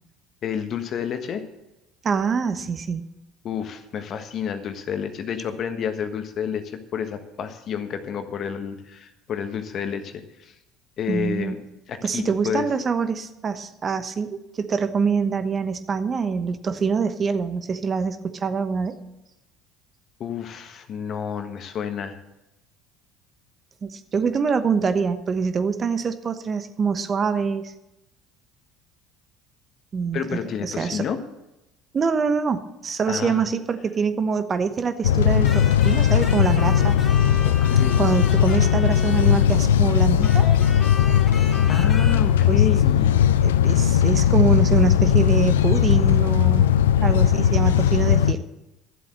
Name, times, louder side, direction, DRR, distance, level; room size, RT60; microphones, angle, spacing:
voice 1, 0.4-1.4 3.4-10.5 11.0-11.6 11.9-12.7 20.2-22.2 30.1-31.2 33.1-33.4 37.4-38.1 41.7-43.2, left 8 dB, 50° left, 8 dB, 1.4 m, -30 dB
voice 2, 2.0-3.0 11.1-11.6 12.0-19.0 23.8-27.7 29.9-30.2 30.6-31.1 31.9-37.0 38.0-40.5 42.5-42.7 43.4-46.7 47.0-48.4, right 5 dB, 40° right, 10 dB, 1.0 m, -25 dB
sound 1, 35.0-48.3, left 10 dB, 85° left, 0.4 m, -18 dB
sound 2, 35.4-39.7 40.2-42.2, left 2 dB, 25° left, 2.8 m, -36 dB
13.0 x 7.6 x 7.6 m, 0.94 s
hypercardioid pair, 65°, 0 cm